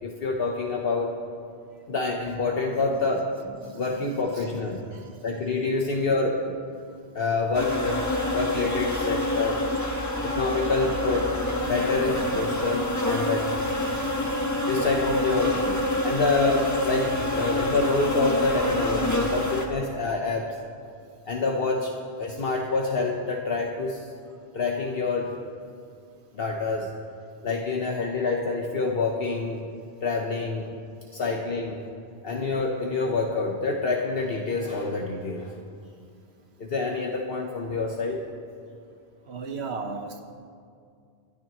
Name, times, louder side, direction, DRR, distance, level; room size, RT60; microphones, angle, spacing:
voice 1, 0.0-1.2 1.9-3.3 3.7-4.8 5.2-6.6 7.1-9.7 10.2-11.4 11.6-13.5 14.6-15.6 16.0-20.5 21.3-24.1 24.5-25.4 26.3-26.9 27.4-29.7 30.0-30.7 31.1-31.8 32.2-35.5 36.6-38.2, left 3 dB, 65° left, 0 dB, 1.2 m, -27 dB
voice 2, 4.4-5.1 19.2-19.3 39.3-40.2, right 4 dB, 80° right, 5 dB, 1.4 m, -36 dB
sound 1, 7.5-19.7, left 1 dB, 15° left, 1.3 m, -27 dB
25.5 x 12.0 x 3.1 m, 2.3 s
omnidirectional pair, 1.1 m